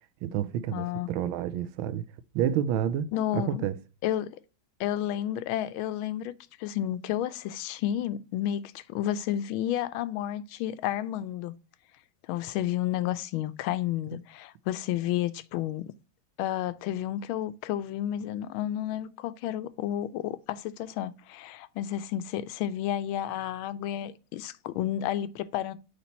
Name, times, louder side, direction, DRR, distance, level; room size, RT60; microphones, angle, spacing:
voice 1, 0.2-2.0 2.3-3.1 3.3-3.8, right 9 dB, 85° right, 1.4 m, -29 dB
voice 2, 0.7-1.1 3.1-3.6 4.0-4.4 4.8-6.3 6.6-11.5 12.3-15.9 16.4-25.8, left 12 dB, 85° left, 1.4 m, -31 dB
8.2 x 3.2 x 4.2 m
omnidirectional pair, 2.2 m